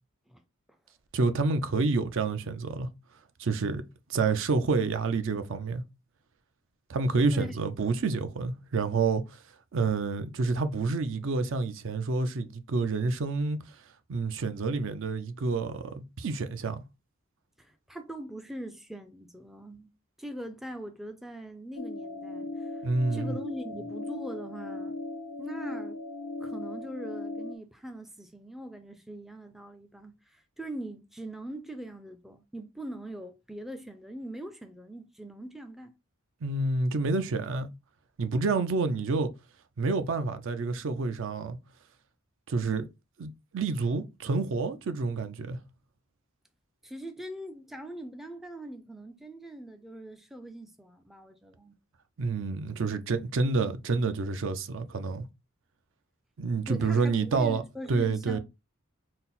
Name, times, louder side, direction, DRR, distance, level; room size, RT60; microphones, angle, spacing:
voice 1, 1.1-2.9 3.4-3.8 4.1-5.8 6.9-9.4 9.7-13.6 14.1-16.8 22.8-23.4 36.4-37.7 38.2-39.3 39.8-41.6 42.5-42.9 43.2-45.6 52.2-55.3 56.4-57.6 57.9-58.4, right 4 dB, 60° right, 0.5 m, -28 dB
voice 2, 17.6-19.9 20.2-22.9 23.1-25.0 25.4-26.0 26.4-35.9 46.8-51.8 56.7-58.4, right 1 dB, ahead, 0.3 m, -42 dB
sound 1, 21.8-27.6, left 2 dB, 90° left, 0.4 m, -38 dB
4.1 x 2.0 x 3.9 m
head